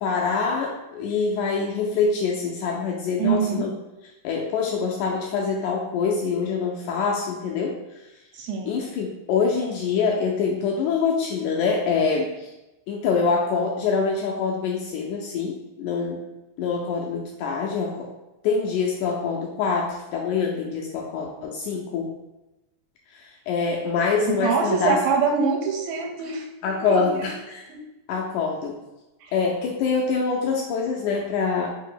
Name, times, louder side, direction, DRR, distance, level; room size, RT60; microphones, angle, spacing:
voice 1, 0.0-3.7 4.2-7.8 8.7-12.5 12.9-16.2 16.6-18.1 18.4-22.1 23.1-25.0 26.6-27.7 28.1-28.8 29.3-31.7, left 5 dB, 85° left, -1 dB, 1.8 m, -25 dB
voice 2, 3.2-3.7 8.3-8.8 24.3-26.5 26.8-27.3 27.7-27.8 29.2-29.3, right 6 dB, 80° right, 2 dB, 2.3 m, -24 dB
5.2 x 2.7 x 3.8 m, 1.0 s
omnidirectional pair, 4.0 m